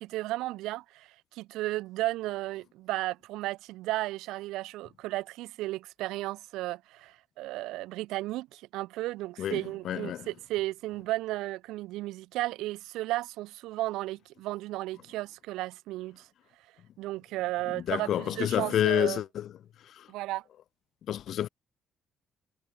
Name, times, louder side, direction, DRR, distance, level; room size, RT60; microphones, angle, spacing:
voice 1, 0.0-16.3 17.0-19.2 20.1-20.4, right 17 dB, 65° right, 0.8 m, -34 dB
voice 2, 9.4-10.2 17.9-19.5 20.0-20.1 21.1-21.5, left 11 dB, 55° left, 0.5 m, -29 dB
figure-of-eight pair, 45°, 0 cm